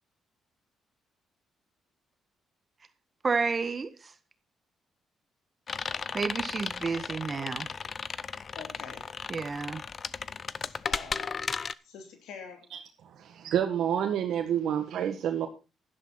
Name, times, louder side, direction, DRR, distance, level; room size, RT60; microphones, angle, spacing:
voice 1, 3.2-4.1 6.1-7.7 9.3-9.8, right 4 dB, 35° right, 1.5 m, -31 dB
sound 1, 5.7-11.7, left 5 dB, 40° left, 0.6 m, -35 dB
voice 2, 8.5-9.0 10.6-11.5 11.8-12.7, left 5 dB, 85° left, 2.9 m, -46 dB
voice 3, 13.1-15.5, right 9 dB, 75° right, 1.7 m, -28 dB
11.5 x 11.0 x 4.1 m
cardioid pair, 90°, 0 cm